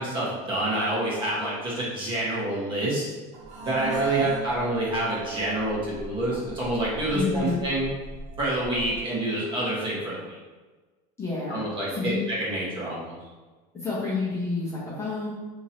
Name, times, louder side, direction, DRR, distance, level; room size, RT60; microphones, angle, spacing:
voice 1, 0.0-3.0 3.7-7.9 8.4-10.3 11.5-13.1, right 1 dB, 25° right, -6 dB, 1.2 m, -27 dB
sound 1, 3.3-9.0, right 4 dB, 80° right, 1.1 m, -36 dB
voice 2, 3.8-4.3 7.1-7.6 11.2-12.2 13.7-15.3, left 4 dB, 15° left, -8 dB, 0.8 m, -30 dB
2.9 x 2.7 x 4.2 m, 1.3 s
supercardioid pair, 150°, 19 cm